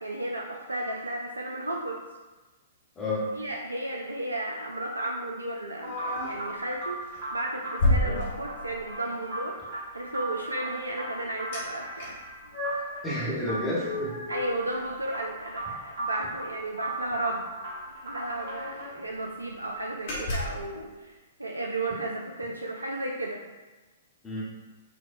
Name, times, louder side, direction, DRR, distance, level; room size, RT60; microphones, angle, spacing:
voice 1, 0.0-2.0 3.4-7.0 7.3-9.6 9.9-12.2 14.3-17.5 18.0-23.4, right 1 dB, 80° right, 0 dB, 0.3 m, -33 dB
voice 2, 3.0-3.3 8.0-8.2 13.0-14.2 24.2-24.4, left 1 dB, 15° left, -7 dB, 0.9 m, -30 dB
sound 1, 5.8-6.5 7.0-7.2 7.8-8.9 11.5-11.7 12.0-13.0 13.5-15.3 15.6-15.7 16.0-16.2 17.3-17.4 17.7-17.8 18.2-19.1 19.5-19.7 20.1-20.7, left 1 dB, 50° left, 0.9 m, -31 dB
sound 2, 5.9-18.9, right 2 dB, 55° right, 1.2 m, -38 dB
4.7 x 2.1 x 2.6 m, 1.2 s
figure-of-eight pair, 110°, 0 cm